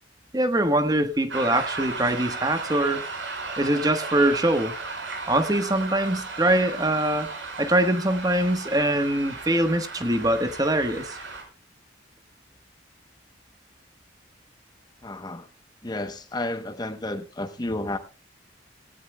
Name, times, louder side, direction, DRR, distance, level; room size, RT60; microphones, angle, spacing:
voice 1, 0.3-3.1 3.6-4.7 5.3-7.3 7.6-11.2, right 1 dB, 20° right, 1.2 m, -23 dB
sound 1, 1.3-11.4, right 3 dB, 75° right, 5.3 m, -35 dB
voice 2, 15.0-15.5 15.8-18.0, left 2 dB, 20° left, 0.8 m, -31 dB
18.0 x 16.5 x 2.2 m
head